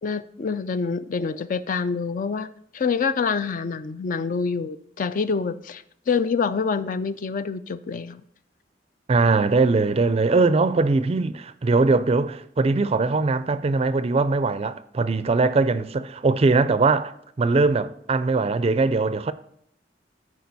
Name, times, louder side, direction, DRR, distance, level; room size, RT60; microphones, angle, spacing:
voice 1, 0.0-2.5 2.7-8.2, left 5 dB, 45° left, 0.4 m, -26 dB
voice 2, 9.1-19.3, right 3 dB, 35° right, 0.4 m, -21 dB
14.0 x 4.9 x 4.0 m
head